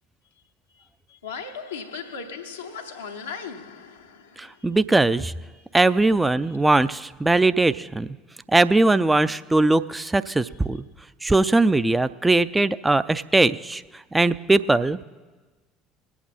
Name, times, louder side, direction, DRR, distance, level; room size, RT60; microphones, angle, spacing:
voice 1, 0.7-4.8 5.5-6.0 6.4-6.7, left 5 dB, 80° left, 0.8 m, -38 dB
voice 2, 4.4-5.3 5.7-8.1 8.5-10.8 11.2-13.8 14.1-15.0, right 2 dB, 10° right, 0.5 m, -20 dB
20.5 x 8.5 x 4.2 m
figure-of-eight pair, 60°, 0 cm